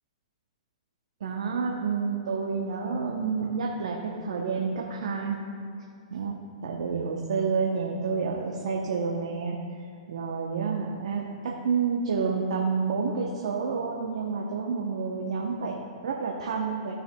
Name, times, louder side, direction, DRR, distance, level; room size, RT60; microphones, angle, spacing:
voice 1, 1.2-5.4 6.1-6.4 6.6-9.6 10.1-16.9, right 5 dB, 70° right, -1 dB, 0.8 m, -29 dB
14.5 x 6.3 x 2.3 m, 2.5 s
hypercardioid pair, 130°, 4 cm